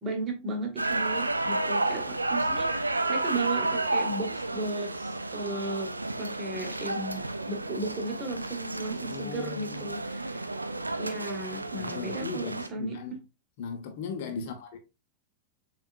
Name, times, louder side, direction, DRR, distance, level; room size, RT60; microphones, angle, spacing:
voice 1, 0.0-10.5 11.0-13.0 14.3-14.5, right 2 dB, 25° right, 1.4 m, -35 dB
sound 1, 0.8-12.7, right 2 dB, 80° right, 0.3 m, -31 dB
voice 2, 9.0-9.9 11.8-13.2 13.6-14.8, left 6 dB, 50° left, 0.8 m, -38 dB
7.0 x 2.5 x 2.5 m
figure-of-eight pair, 90°, 0 cm